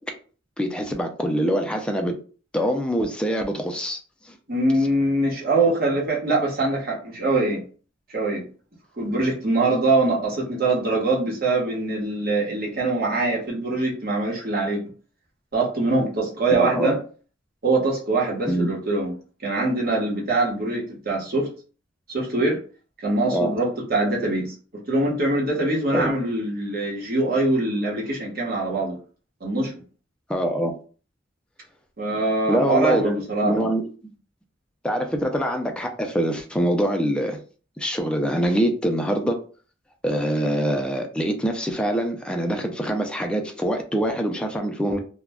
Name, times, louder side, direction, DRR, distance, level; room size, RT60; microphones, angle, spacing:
voice 1, 0.6-2.2 2.5-4.0 16.5-17.0 18.5-18.7 23.3-23.5 25.9-26.1 30.3-30.7 32.5-33.8 34.8-37.4 37.8-39.4 40.0-45.0, equal, 5° left, 3 dB, 0.4 m, -24 dB
voice 2, 4.5-7.6 8.1-8.5 9.0-14.9 15.5-17.0 17.6-19.1 19.4-21.5 22.1-22.6 23.0-29.0 29.4-29.7 32.0-33.7, right 2 dB, 50° right, -3 dB, 1.1 m, -23 dB
2.4 x 2.1 x 3.5 m, 0.39 s
head